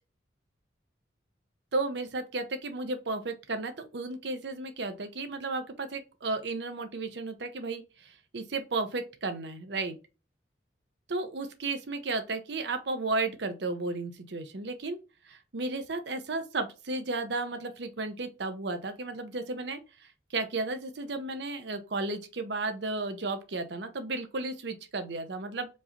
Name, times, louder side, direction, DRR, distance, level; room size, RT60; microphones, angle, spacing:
voice 1, 1.7-10.0 11.1-15.0 15.2-25.7, right 3 dB, 70° right, 0.7 m, -34 dB
4.5 x 2.9 x 2.7 m
head